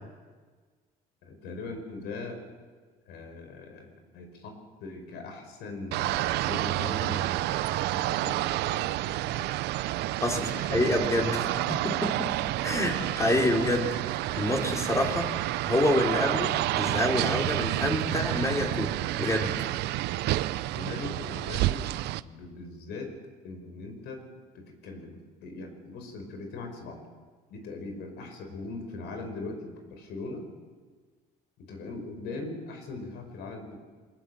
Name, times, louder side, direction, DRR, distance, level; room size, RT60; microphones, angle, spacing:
voice 1, 1.2-2.4 3.1-9.6 10.3-11.4 20.7-21.9 22.2-23.1 23.4-24.2 24.5-27.0 27.5-30.5 31.6-33.8, left 3 dB, 80° left, 5 dB, 5.2 m, -40 dB
sound 1, 5.9-22.2, right 16 dB, 85° right, 0.6 m, -29 dB
voice 2, 10.7-11.3 11.8-12.3 12.6-13.9 14.4-15.3 15.7-19.5, left 1 dB, 15° left, 1 dB, 3.6 m, -27 dB
22.5 x 19.0 x 7.7 m, 1.5 s
cardioid pair, 110°, 17 cm